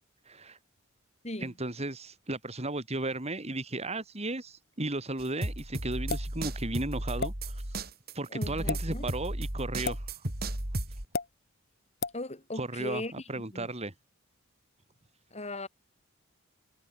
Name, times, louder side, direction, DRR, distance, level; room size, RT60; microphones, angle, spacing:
voice 1, 0.3-0.6 1.4-7.6 8.1-10.1 12.6-13.9, right 2 dB, 30° right, 2.9 m, -35 dB
sound 1, 5.2-11.0, right 1 dB, 50° right, 4.0 m, -34 dB
sound 2, 6.1-6.3 7.2-7.3 8.6-8.8 9.8-10.0 11.1-11.3 12.0-12.2, left 4 dB, 50° left, 2.5 m, -32 dB
voice 2, 8.3-9.1 12.1-13.7 15.3-15.7, left 1 dB, 30° left, 5.0 m, -38 dB
head